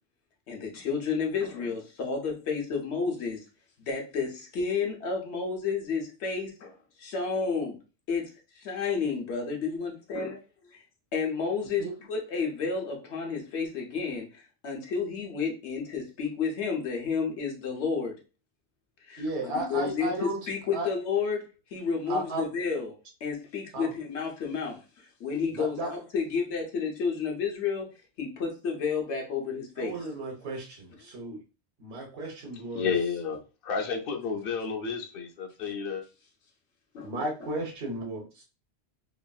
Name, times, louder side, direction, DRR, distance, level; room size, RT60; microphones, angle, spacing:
voice 1, 0.5-3.4 3.9-6.7 7.0-7.8 8.1-8.3 8.6-10.4 11.1-14.3 14.6-18.2 19.1-21.4 21.7-22.9 23.2-24.8 25.2-27.9 28.2-30.1 36.9-37.1, left 5 dB, 80° left, 1.1 m, -31 dB
voice 2, 19.2-20.4 20.7-20.9 22.1-22.5 23.7-23.9 25.5-25.9 29.8-31.4 31.8-32.9 37.0-38.4, right 1 dB, 75° right, 1.2 m, -34 dB
voice 3, 32.7-36.0, left 5 dB, 65° left, 0.7 m, -31 dB
3.0 x 2.5 x 2.3 m
omnidirectional pair, 1.1 m